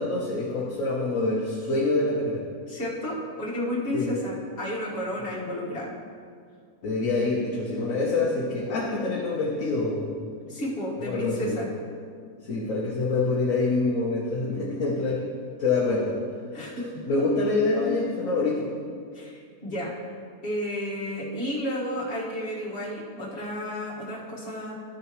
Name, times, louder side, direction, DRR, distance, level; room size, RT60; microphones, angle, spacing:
voice 1, 0.0-2.4 3.9-4.2 6.8-10.3 11.0-11.6 12.4-15.2 15.6-16.2 17.1-18.7, left 3 dB, 65° left, -3 dB, 1.3 m, -26 dB
voice 2, 2.7-5.9 10.5-11.7 16.5-16.8 19.1-19.9 20.4-24.8, left 1 dB, 45° left, -6 dB, 2.0 m, -32 dB
13.0 x 6.7 x 3.1 m, 2.2 s
omnidirectional pair, 1.6 m